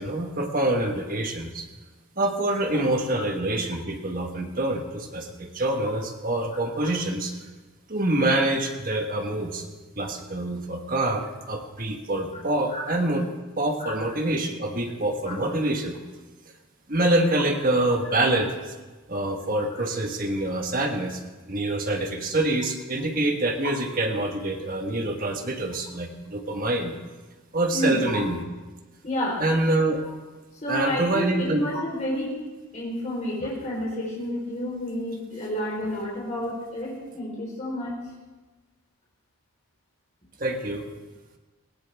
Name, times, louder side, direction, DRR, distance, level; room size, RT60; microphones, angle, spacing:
voice 1, 0.0-1.7 2.2-7.3 7.9-9.6 10.0-13.2 13.6-16.0 16.9-18.7 19.1-21.2 21.5-26.9 27.5-28.4 29.4-30.0 30.7-31.7 40.4-40.9, right 1 dB, 40° right, 3 dB, 1.5 m, -26 dB
voice 2, 27.7-28.2 29.0-29.4 30.0-30.1 30.5-32.4 32.7-38.0, left 1 dB, 30° left, -4 dB, 4.1 m, -30 dB
18.5 x 16.5 x 3.5 m, 1.2 s
head